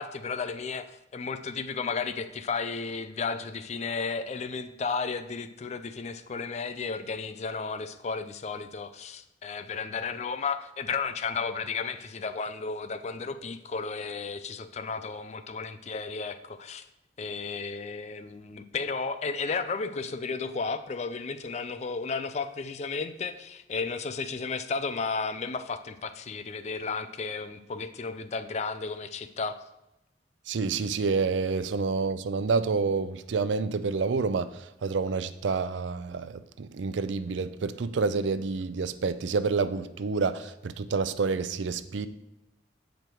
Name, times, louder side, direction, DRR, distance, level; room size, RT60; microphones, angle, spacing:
voice 1, 0.0-16.8 17.2-29.5, left 4 dB, 35° left, 0.4 m, -33 dB
voice 2, 30.5-42.1, right 4 dB, 85° right, 0.5 m, -28 dB
7.5 x 5.2 x 4.5 m
head